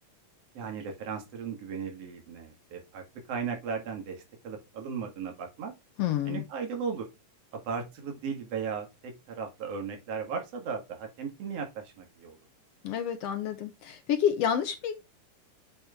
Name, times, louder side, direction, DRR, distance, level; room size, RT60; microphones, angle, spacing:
voice 1, 0.5-5.7 6.3-7.1 7.5-12.4, right 6 dB, 50° right, 2.7 m, -36 dB
voice 2, 6.0-6.4 12.8-14.9, left 9 dB, 75° left, 1.5 m, -29 dB
7.3 x 4.3 x 3.5 m
omnidirectional pair, 3.8 m